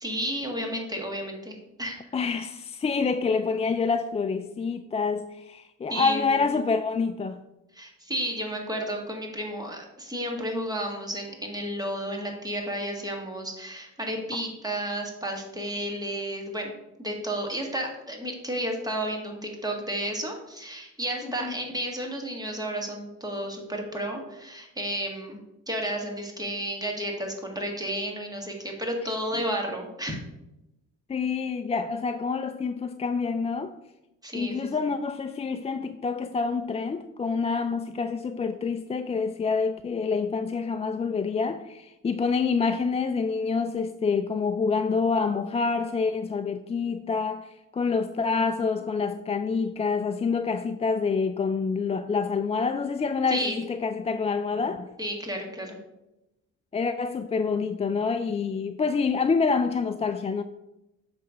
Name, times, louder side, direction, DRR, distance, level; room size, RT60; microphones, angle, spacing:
voice 1, 0.0-2.0 5.9-6.6 7.7-16.7 17.0-25.4 25.7-30.2 34.2-34.9 48.2-48.8 53.3-53.6 55.0-55.8, equal, 10° right, 1.7 m, -32 dB
voice 2, 2.1-7.4 21.4-21.5 31.1-33.7 34.3-54.9 56.7-60.4, left 5 dB, 20° left, 0.3 m, -27 dB
7.5 x 3.4 x 6.3 m
cardioid pair, 90°, 30 cm